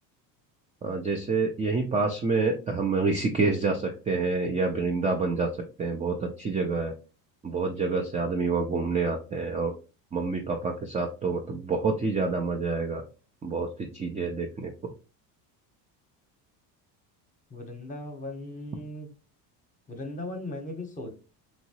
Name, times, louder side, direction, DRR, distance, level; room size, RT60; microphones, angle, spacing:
voice 1, 0.8-5.5 5.8-6.9 7.4-9.7 10.1-13.0 13.4-14.7, right 4 dB, 15° right, 2 dB, 0.4 m, -27 dB
voice 2, 17.5-19.1 19.9-21.1, left 1 dB, 15° left, 5 dB, 0.9 m, -38 dB
3.0 x 2.6 x 2.8 m, 0.33 s
hypercardioid pair, 80°, 47 cm